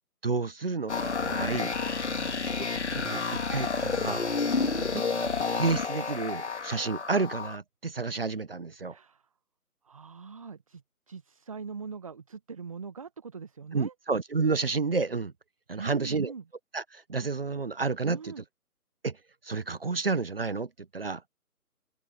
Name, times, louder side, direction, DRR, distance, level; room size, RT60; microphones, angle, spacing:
voice 1, 0.2-1.7 2.5-2.6 2.9-4.3 4.9-5.0 5.6-9.0 13.7-15.3 15.7-16.3 16.7-18.3 19.0-19.2 19.4-21.2, right 4 dB, 40° right, 1.2 m, -30 dB
sound 1, 0.9-7.6, left 4 dB, 45° left, 2.6 m, -30 dB
voice 2, 2.0-2.4 4.5-4.9 8.9-9.3 9.8-13.9 15.8-16.4 18.0-18.4, right 5 dB, 20° right, 1.3 m, -42 dB
figure-of-eight pair, 155°, 46 cm